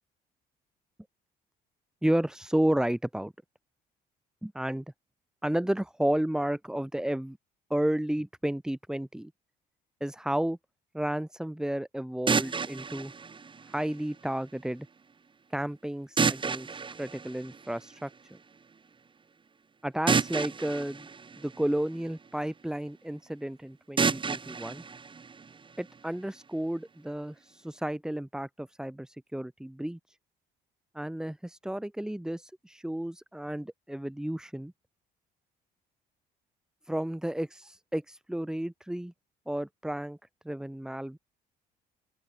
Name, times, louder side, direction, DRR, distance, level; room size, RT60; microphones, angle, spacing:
voice 1, 2.0-3.3 4.4-4.8 5.4-7.4 7.7-9.3 10.0-10.6 10.9-13.1 13.7-14.9 15.5-18.4 19.8-21.1 21.4-24.8 25.8-30.2 30.9-34.7 36.9-39.1 39.5-40.2 40.4-41.2, right 1 dB, 5° right, 2.0 m, -32 dB
sound 1, 12.3-14.3 16.2-18.1 20.1-22.3 24.0-26.0, right 5 dB, 30° right, 4.5 m, -31 dB
open air
cardioid pair, 110°, 17 cm